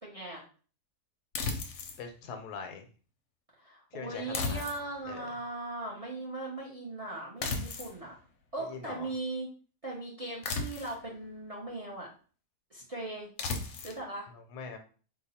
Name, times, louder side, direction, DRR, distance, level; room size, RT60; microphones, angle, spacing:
voice 1, 0.0-0.4 3.6-8.1 8.5-9.5 9.8-12.1 12.7-13.3 13.8-14.3, right 2 dB, 35° right, -4 dB, 0.6 m, -39 dB
sound 1, 1.3-2.0 4.3-5.1 7.4-8.0 10.4-11.1 13.4-14.0, left 4 dB, 65° left, 0.9 m, -35 dB
voice 2, 2.0-2.9 3.9-4.7 5.1-5.3 8.6-9.1 14.5-14.8, left 5 dB, 80° left, 5 dB, 1.1 m, -42 dB
2.8 x 2.2 x 4.1 m, 0.39 s
omnidirectional pair, 1.7 m